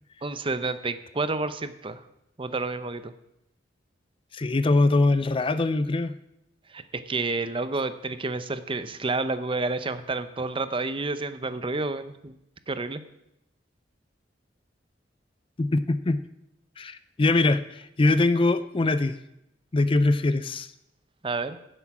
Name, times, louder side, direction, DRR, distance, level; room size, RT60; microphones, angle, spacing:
voice 1, 0.2-2.0 2.4-3.1 6.7-6.8 7.1-12.3 12.7-13.0 21.2-21.6, right 3 dB, 30° right, 12 dB, 0.7 m, -29 dB
voice 2, 4.3-6.2 15.6-16.2 16.8-19.2 19.7-20.7, left 2 dB, 30° left, 13 dB, 0.5 m, -23 dB
15.5 x 7.9 x 6.1 m, 0.84 s
head